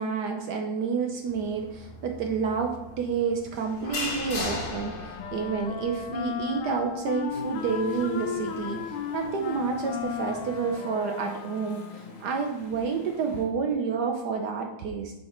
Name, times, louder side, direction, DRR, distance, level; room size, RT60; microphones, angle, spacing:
voice 1, 0.0-15.1, right 5 dB, 65° right, 3 dB, 1.1 m, -29 dB
sound 1, 1.3-10.7, left 2 dB, 55° left, 1.7 m, -39 dB
Wind instrument woodwind instrument, 4.7-12.2, left 7 dB, 85° left, 1.5 m, -35 dB
Chatter / Stream, 7.3-13.5, left 2 dB, 35° left, 1.2 m, -47 dB
8.4 x 4.3 x 4.4 m, 0.99 s
omnidirectional pair, 2.2 m